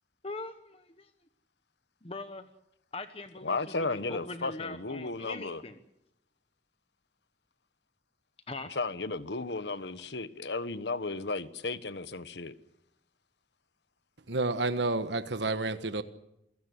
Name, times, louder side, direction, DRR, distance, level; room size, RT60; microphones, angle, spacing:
voice 1, 0.2-1.1 2.0-2.5 2.9-5.7 8.5-8.7, left 3 dB, 35° left, 1.2 m, -41 dB
voice 2, 3.4-5.6 8.7-12.5, left 3 dB, 80° left, 1.3 m, -34 dB
voice 3, 14.3-16.0, right 2 dB, 85° right, 1.4 m, -30 dB
28.0 x 16.5 x 8.1 m
head